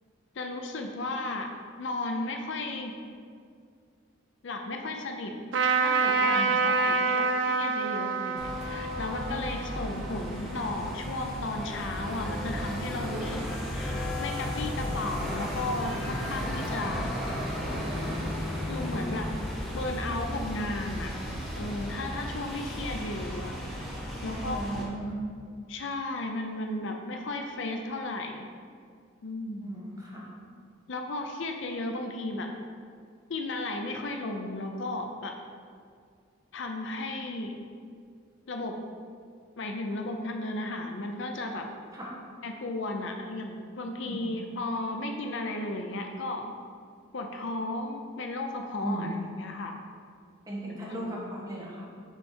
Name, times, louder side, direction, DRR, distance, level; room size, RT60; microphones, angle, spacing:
voice 1, 0.3-1.5 1.8-2.9 4.4-5.3 5.8-17.2 18.7-19.3 19.7-21.1 21.6-23.8 24.2-24.9 25.7-28.5 29.2-29.7 30.9-32.5 33.3-35.3 36.5-37.5 38.5-38.7 39.6-41.7 42.4-46.5 47.1-49.8 50.9-51.2, left 2 dB, 60° left, 4 dB, 0.5 m, -34 dB
Trumpet, 5.5-11.0, right 4 dB, 60° right, 0.5 m, -28 dB
sound 1, 8.4-24.8, equal, ahead, 0.8 m, -34 dB
voice 2, 24.2-25.1 29.6-30.3 41.9-42.1 44.0-44.2 48.8-49.1 50.5-51.8, right 1 dB, 15° right, -5 dB, 1.2 m, -36 dB
7.0 x 4.4 x 4.3 m, 2.2 s
head